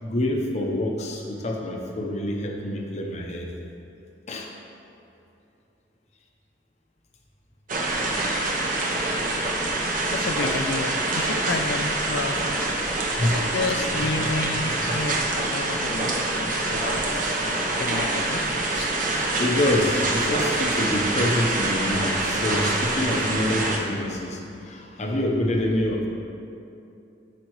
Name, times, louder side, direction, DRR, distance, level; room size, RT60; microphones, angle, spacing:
voice 1, 0.0-3.5 4.3-4.5 10.4-10.6 13.2-13.3 13.8-13.9 14.9-15.0 19.4-26.1, left 1 dB, 40° left, 1 dB, 0.9 m, -26 dB
sound 1, 7.7-23.8, right 2 dB, 50° right, 1.0 m, -25 dB
voice 2, 10.1-12.6 13.2-17.2 17.8-18.9, left 3 dB, 70° left, 10 dB, 0.4 m, -31 dB
13.0 x 5.2 x 3.1 m, 2.7 s
head